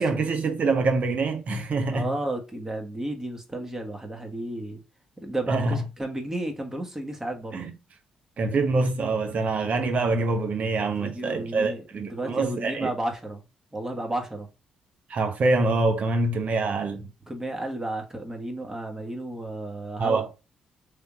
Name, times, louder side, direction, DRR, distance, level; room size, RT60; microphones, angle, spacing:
voice 1, 0.0-2.1 5.5-5.8 7.5-7.7 8.4-12.9 15.1-17.1 20.0-20.3, right 3 dB, 55° right, 0.9 m, -25 dB
voice 2, 1.9-4.8 5.2-7.6 11.0-13.4 13.7-14.5 17.3-20.3, right 1 dB, 15° right, 1.3 m, -33 dB
3.4 x 2.8 x 3.5 m
hypercardioid pair, 45°, 3 cm